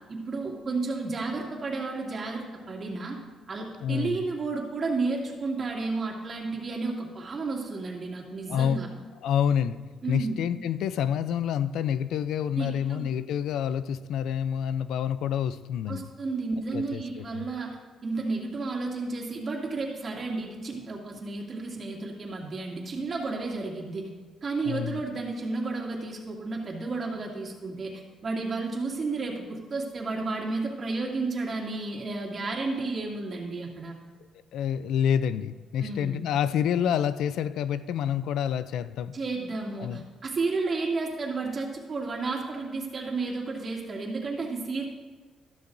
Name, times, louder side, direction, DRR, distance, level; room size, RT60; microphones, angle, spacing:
voice 1, 0.1-3.2 3.5-8.9 10.0-10.3 12.6-13.1 15.9-17.8 18.0-24.1 24.4-34.0 35.8-36.2 39.1-44.9, right 3 dB, 40° right, -1 dB, 2.5 m, -32 dB
voice 2, 3.8-4.2 8.5-8.8 9.2-9.8 10.1-16.1 16.7-17.0 17.3-17.4 24.6-25.0 34.5-39.1 39.8-40.0, left 9 dB, 80° left, 14 dB, 0.4 m, -28 dB
13.0 x 13.0 x 2.6 m, 1.4 s
cardioid pair, 90°, 0 cm